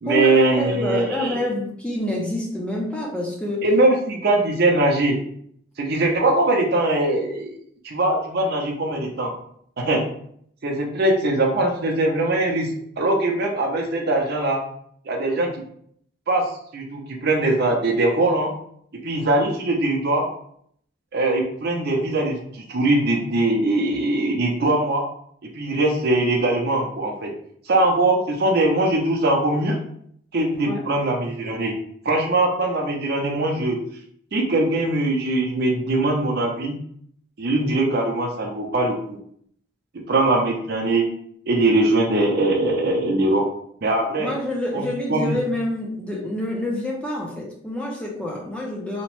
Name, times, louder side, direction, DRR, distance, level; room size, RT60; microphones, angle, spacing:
voice 1, 0.0-1.4 3.6-5.2 5.8-7.5 7.8-9.3 9.8-10.0 10.6-12.7 13.0-14.6 15.1-15.6 16.3-18.5 19.0-20.3 21.1-25.0 25.4-27.3 27.7-29.8 30.3-31.7 32.0-33.8 34.3-36.8 37.4-39.2 40.1-41.1 41.5-43.5 43.8-44.3 44.7-45.4, right 2 dB, 50° right, 1 dB, 0.5 m, -21 dB
voice 2, 0.6-3.7 30.7-30.8 44.2-49.0, left 1 dB, 5° left, -2 dB, 0.4 m, -27 dB
2.9 x 2.1 x 3.0 m, 0.66 s
head